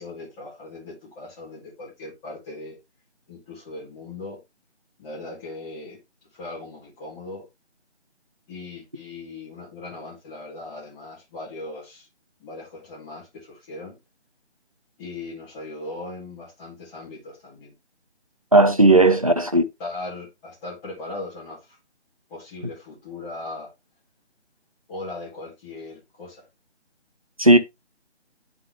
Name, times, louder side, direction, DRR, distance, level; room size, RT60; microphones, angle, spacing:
voice 1, 0.0-2.8 3.3-4.4 5.0-6.0 6.3-7.5 8.5-12.1 12.4-14.0 15.0-17.7 18.9-19.2 19.8-21.8 22.3-23.7 24.9-26.5, left 2 dB, 10° left, 1.8 m, -38 dB
voice 2, 18.5-19.6 27.4-27.6, right 2 dB, 30° right, 0.4 m, -15 dB
10.5 x 3.8 x 3.0 m
figure-of-eight pair, 160°, 34 cm